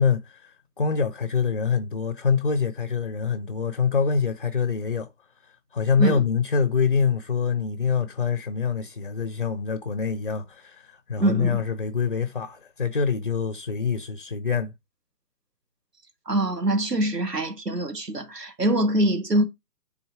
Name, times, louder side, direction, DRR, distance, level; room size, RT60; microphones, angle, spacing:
voice 1, 0.0-5.1 5.7-14.7, left 6 dB, 35° left, 0.4 m, -25 dB
voice 2, 11.2-11.6 16.3-19.4, right 1 dB, 85° right, 1.9 m, -24 dB
8.9 x 4.0 x 4.6 m
figure-of-eight pair, 140°, 47 cm